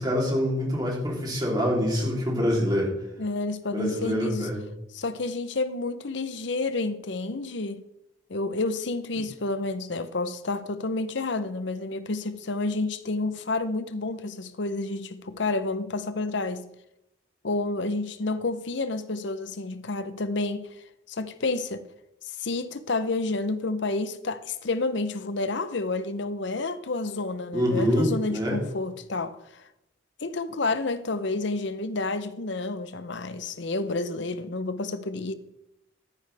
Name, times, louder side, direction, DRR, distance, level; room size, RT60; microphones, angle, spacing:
voice 1, 0.0-2.9 3.7-4.6 27.5-28.6, equal, 20° right, 3.4 m, -25 dB
voice 2, 3.2-4.5 4.9-7.8 8.3-16.7 17.4-20.7 21.1-21.8 22.4-29.6 30.2-35.3, left 3 dB, 60° left, 0.7 m, -30 dB
12.0 x 10.0 x 3.4 m
head